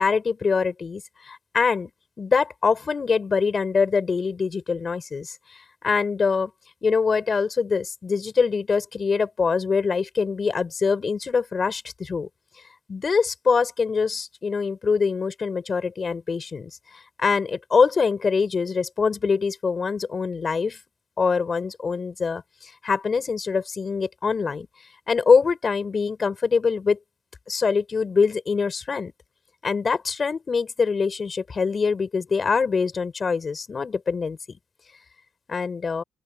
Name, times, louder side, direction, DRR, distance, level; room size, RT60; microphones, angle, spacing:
voice 1, 0.0-1.9 2.2-6.5 6.8-12.3 12.9-16.7 17.2-20.8 21.2-24.7 25.1-27.0 27.5-29.1 29.6-34.6 35.5-36.0, left 5 dB, 40° left, 5.3 m, -24 dB
open air
cardioid pair, 90°, 0 cm